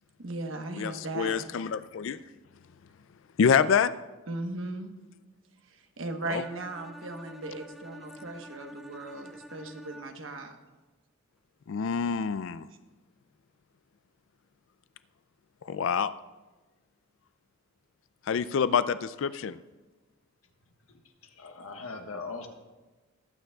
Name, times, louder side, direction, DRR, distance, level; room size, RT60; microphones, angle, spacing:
voice 1, 0.2-1.4 4.3-4.9 5.7-10.6, right 2 dB, 65° right, 4 dB, 1.2 m, -37 dB
voice 2, 0.8-2.2 3.4-3.9 6.3-6.4 11.7-12.7 15.7-16.1 18.3-19.6, left 6 dB, 60° left, 14 dB, 0.3 m, -26 dB
Bowed string instrument, 6.4-10.4, equal, ahead, 0.4 m, -48 dB
voice 3, 20.9-22.5, left 4 dB, 80° left, 3 dB, 1.3 m, -41 dB
20.5 x 9.1 x 2.3 m, 1.2 s
head